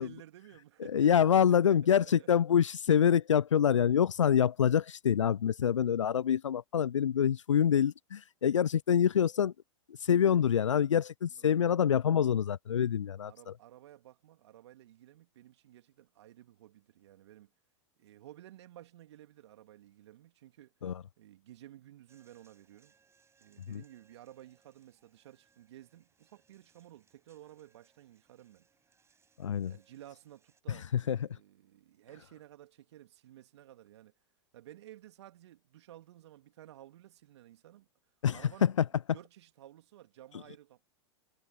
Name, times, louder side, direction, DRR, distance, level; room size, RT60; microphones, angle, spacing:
voice 1, 0.0-2.4 11.3-11.6 11.9-12.1 13.2-17.5 18.0-20.7 21.2-22.9 23.4-28.7 29.7-34.1 34.5-37.9 38.3-38.7 39.1-40.9, right 13 dB, 60° right, 2.9 m, -54 dB
voice 2, 0.9-9.5 10.0-13.5 20.8-21.0 23.7-23.8 29.4-29.7 30.9-31.2 38.2-38.7, left 8 dB, 80° left, 0.5 m, -26 dB
sound 1, 22.1-30.6, right 5 dB, 15° right, 6.0 m, -71 dB
figure-of-eight pair, 95°, 16 cm